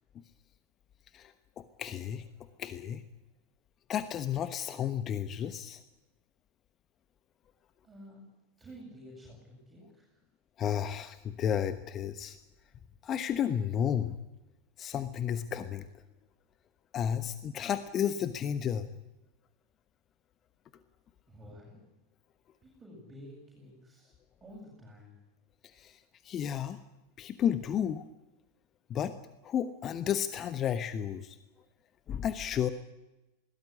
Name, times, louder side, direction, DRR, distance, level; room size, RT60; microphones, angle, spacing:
voice 1, 1.1-2.3 2.6-3.0 3.9-5.8 10.6-12.4 13.0-14.2 14.8-15.9 16.9-18.9 25.6-26.8 27.2-28.1 28.9-29.1 29.4-31.4 32.1-32.7, left 9 dB, 30° left, 12 dB, 1.2 m, -32 dB
voice 2, 7.8-8.2 8.6-10.1 21.3-21.8 22.6-24.1 24.4-25.2, equal, 15° right, -2 dB, 7.9 m, -51 dB
21.5 x 19.0 x 9.8 m, 1.0 s
figure-of-eight pair, 90°, 0 cm